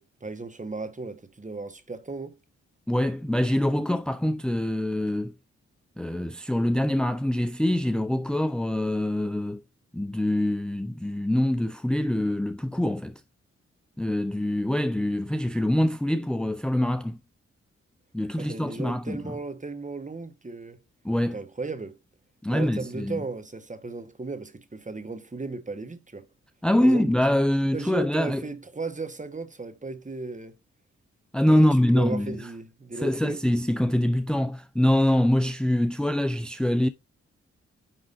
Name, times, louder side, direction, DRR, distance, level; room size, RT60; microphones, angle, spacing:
voice 1, 0.0-2.3 18.4-20.8 21.3-22.0 22.5-26.2 26.8-27.1 27.7-30.6 31.5-33.4, right 3 dB, 25° right, 1.5 m, -35 dB
voice 2, 2.9-5.3 6.0-9.6 9.9-13.2 14.0-17.2 18.1-19.4 21.0-21.4 22.4-23.2 26.6-28.4 31.3-32.5 33.0-36.9, left 1 dB, 5° left, 0.6 m, -24 dB
9.7 x 3.6 x 2.7 m
supercardioid pair, 45°, 29 cm